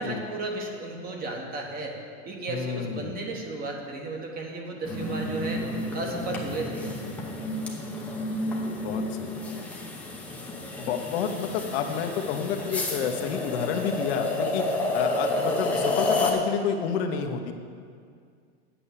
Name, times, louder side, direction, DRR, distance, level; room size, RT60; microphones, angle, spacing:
voice 1, 0.0-2.0 2.2-5.6 5.9-6.9, right 2 dB, 25° right, 1 dB, 1.3 m, -34 dB
voice 2, 2.5-3.3 8.8-9.4 10.8-17.5, left 7 dB, 55° left, 5 dB, 0.9 m, -29 dB
sound 1, 4.8-16.3, left 2 dB, 5° left, 0.8 m, -30 dB
8.7 x 7.0 x 7.2 m, 2.2 s
supercardioid pair, 155°, 37 cm